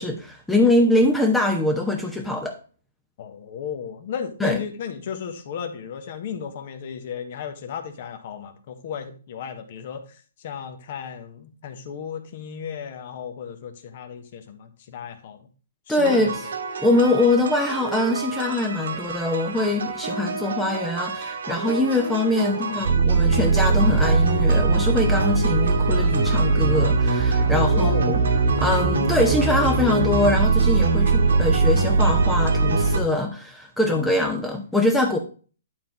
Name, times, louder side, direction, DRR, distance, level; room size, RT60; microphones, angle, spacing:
voice 1, 0.0-2.5 4.4-4.6 15.9-16.4 16.8-28.2 28.6-35.2, left 2 dB, 5° left, 2 dB, 0.8 m, -23 dB
voice 2, 3.2-15.5 15.9-16.5 22.4-22.9 27.5-28.1, left 7 dB, 45° left, 7 dB, 1.4 m, -34 dB
sound 1, 16.0-33.0, right 4 dB, 75° right, 1.7 m, -22 dB
11.0 x 4.0 x 4.6 m, 0.38 s
hypercardioid pair, 160°, 0 cm